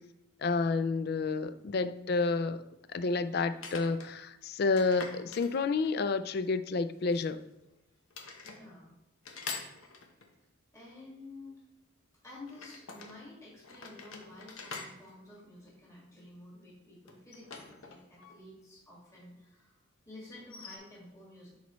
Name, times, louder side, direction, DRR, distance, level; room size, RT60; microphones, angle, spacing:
voice 1, 0.4-2.6 2.9-7.4, left 4 dB, 50° left, 12 dB, 0.3 m, -30 dB
sound 1, 1.4-1.5 3.5-4.1 4.8-6.1 7.0-7.7 8.1-8.6 9.2-10.4 12.5-13.2 13.6-16.1 17.1-18.4 18.6-18.7 20.4-20.8, left 4 dB, 90° left, 1.0 m, -45 dB
voice 2, 8.4-8.9 10.7-11.6 12.2-19.7 20.1-21.5, left 2 dB, 15° left, -5 dB, 1.9 m, -51 dB
10.5 x 4.1 x 3.1 m, 0.90 s
head